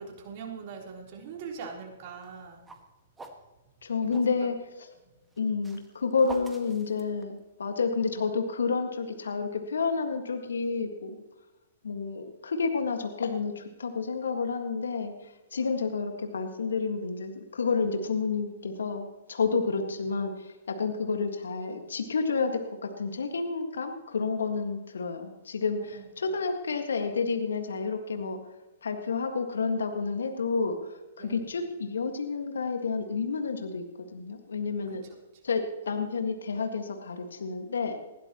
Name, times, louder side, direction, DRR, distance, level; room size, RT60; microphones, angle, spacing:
voice 1, 0.0-2.6 4.0-4.5 19.5-19.6 25.8-26.0 31.2-31.5 34.9-35.1, right 5 dB, 45° right, 0 dB, 3.8 m, -42 dB
sound 1, 2.1-4.3 5.2-7.6, right 3 dB, 10° right, 1.7 m, -46 dB
voice 2, 3.8-4.9 5.4-11.2 11.8-28.4 28.8-35.0 35.4-38.0, left 4 dB, 75° left, 5 dB, 1.8 m, -30 dB
20.5 x 16.0 x 3.1 m, 1.1 s
hypercardioid pair, 120°, 0 cm